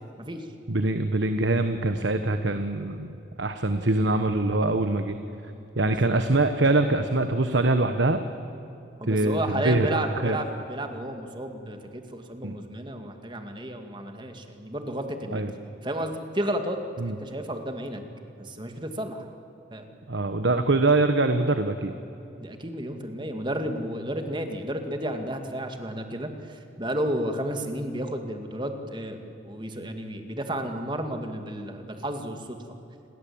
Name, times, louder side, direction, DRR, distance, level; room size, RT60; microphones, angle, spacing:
voice 1, 0.7-3.1 3.4-5.2 5.7-8.2 9.1-10.4 12.4-12.5 15.3-15.5 17.0-17.2 20.1-21.9, right 2 dB, 70° right, 8 dB, 1.2 m, -24 dB
voice 2, 9.0-15.4 15.8-16.8 17.0-18.0 18.4-19.3 19.7-19.8 22.4-29.2 29.4-32.6, right 1 dB, 25° right, 5 dB, 2.3 m, -32 dB
29.5 x 22.0 x 8.7 m, 2.8 s
head